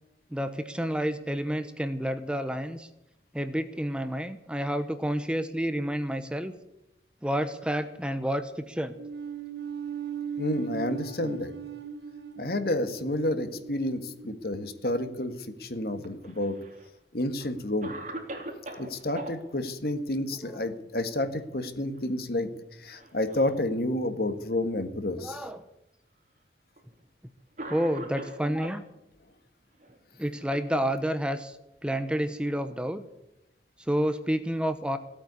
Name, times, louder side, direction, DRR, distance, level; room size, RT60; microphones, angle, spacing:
voice 1, 0.3-2.9 3.3-6.5 7.2-9.0 20.4-20.6 25.2-25.6 27.7-28.8 30.2-31.6 31.8-33.0 33.8-35.0, equal, 5° right, 10 dB, 0.8 m, -29 dB
sound 1, 9.0-15.4, right 8 dB, 75° right, 1.3 m, -38 dB
voice 2, 10.4-11.5 12.4-16.6 17.1-18.0 18.8-22.5 22.8-25.4, left 1 dB, 60° left, 9 dB, 1.7 m, -30 dB
Cough, 16.0-16.9 17.4-17.5 17.8-19.3 21.2-21.6 22.0-22.1 22.9-23.6 24.4-24.5 25.5-25.6 26.8-26.9 27.6-28.8 29.8-31.2, right 1 dB, 45° right, 3.3 m, -41 dB
17.0 x 8.8 x 9.7 m, 0.91 s
head